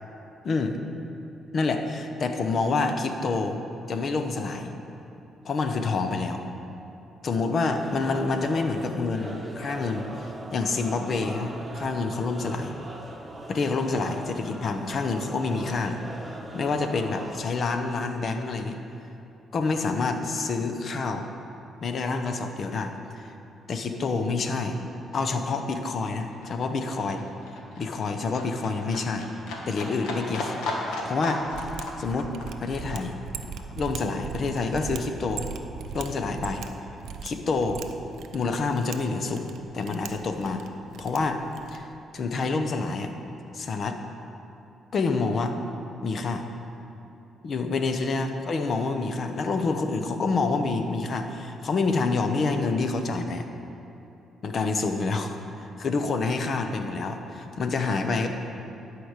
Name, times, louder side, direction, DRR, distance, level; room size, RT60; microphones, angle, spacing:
voice 1, 0.4-0.8 1.5-3.6 3.9-4.7 5.4-6.4 7.2-12.7 13.5-16.0 16.5-18.8 19.5-21.3 21.8-22.9 23.2-23.3 23.7-27.2 27.8-29.2 29.7-31.4 32.0-32.3 32.6-33.2 33.8-35.5 35.9-36.6 37.2-37.8 38.3-40.7 41.0-41.4 41.7-41.8 42.1-43.1 43.5-44.0 44.9-45.6 46.0-46.4 47.4-53.5 54.4-55.4 55.8-58.3, left 3 dB, 50° left, 6 dB, 0.8 m, -27 dB
sound 1, 7.6-17.4, right 1 dB, 20° right, 1.3 m, -41 dB
Livestock farm animals working animals, 23.6-23.7 24.0-35.0 35.3-36.3 36.7-36.8, left 2 dB, 85° left, 1.3 m, -36 dB
Mechanisms, 31.4-41.9, right 7 dB, 80° right, 0.5 m, -40 dB
11.5 x 4.8 x 6.5 m, 3.0 s
cardioid pair, 90°, 0 cm